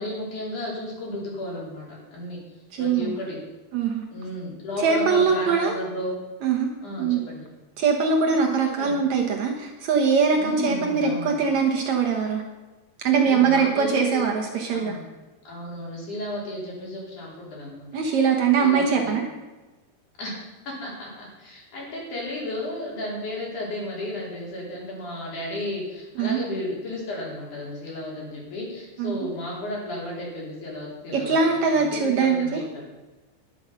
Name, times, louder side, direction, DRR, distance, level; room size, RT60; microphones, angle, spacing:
voice 1, 0.0-1.9 2.1-2.4 2.8-3.4 4.1-6.2 6.8-7.5 8.8-9.0 10.4-11.4 13.1-14.3 14.7-15.0 15.4-17.9 18.6-19.1 20.2-20.4 20.7-32.8, left 1 dB, 50° left, -4 dB, 4.9 m, -33 dB
voice 2, 2.7-3.2 3.7-4.0 4.8-5.8 6.4-6.7 7.0-7.2 7.8-12.4 13.0-15.0 17.9-19.2 26.2-26.4 29.0-29.1 31.1-32.6, right 5 dB, 65° right, 2 dB, 1.8 m, -22 dB
11.5 x 11.0 x 5.8 m, 1.1 s
omnidirectional pair, 4.7 m